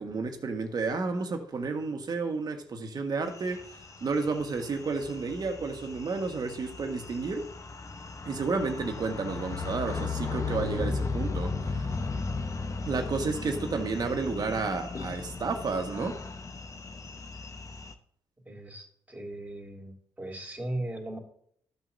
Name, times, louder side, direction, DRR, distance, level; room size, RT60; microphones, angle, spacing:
voice 1, 0.0-7.5 8.2-11.9 12.8-16.2, right 4 dB, 45° right, 1.6 m, -31 dB
sound 1, 3.3-17.9, left 3 dB, 35° left, 1.0 m, -36 dB
voice 2, 18.4-21.2, right 1 dB, 15° right, 3.3 m, -38 dB
14.0 x 5.9 x 2.8 m
supercardioid pair, 65°, 9 cm